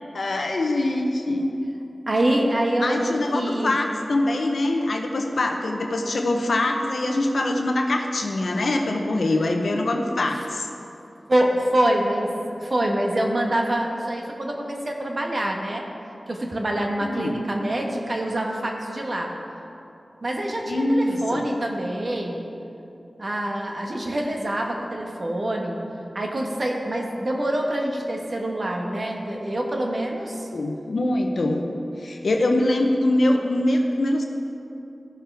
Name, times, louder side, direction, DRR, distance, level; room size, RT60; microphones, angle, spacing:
voice 1, 0.1-1.5 2.8-10.7 17.1-17.4 20.7-21.4 30.5-31.6 32.0-34.2, left 1 dB, 80° left, 3 dB, 0.7 m, -23 dB
voice 2, 2.1-3.8 11.3-15.8 16.3-19.3 20.2-22.4 23.2-25.8 26.1-30.5, right 1 dB, 55° right, 1 dB, 1.3 m, -25 dB
14.5 x 6.6 x 3.4 m, 2.8 s
cardioid pair, 40°, 0 cm